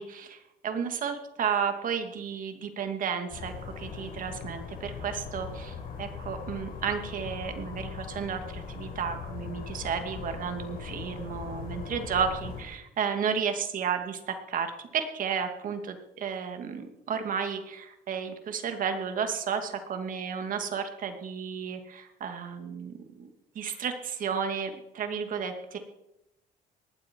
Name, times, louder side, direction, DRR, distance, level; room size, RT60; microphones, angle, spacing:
voice 1, 0.0-23.3 23.5-25.8, right 7 dB, 55° right, 6 dB, 2.6 m, -33 dB
sound 1, 3.3-12.6, left 6 dB, 60° left, 5.3 m, -40 dB
18.5 x 12.0 x 4.8 m, 0.86 s
cardioid pair, 110°, 17 cm